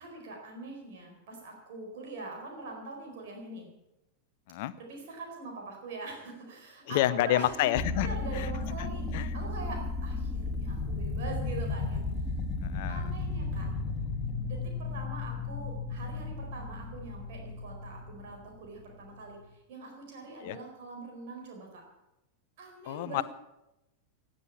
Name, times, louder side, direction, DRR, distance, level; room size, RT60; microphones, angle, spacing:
voice 1, 0.0-3.7 4.8-7.6 8.0-9.8 10.0-12.0 12.9-13.7 14.4-21.8 22.6-23.2, right 3 dB, 55° right, 1 dB, 4.4 m, -43 dB
voice 2, 6.9-8.5 8.8-8.9 9.1-9.3 12.6-13.1 20.4-20.6 22.9-23.2, left 14 dB, 50° left, 15 dB, 0.7 m, -29 dB
sound 1, 7.7-19.2, left 3 dB, 20° left, 2.0 m, -34 dB
18.0 x 7.7 x 8.6 m, 0.91 s
figure-of-eight pair, 90°, 0 cm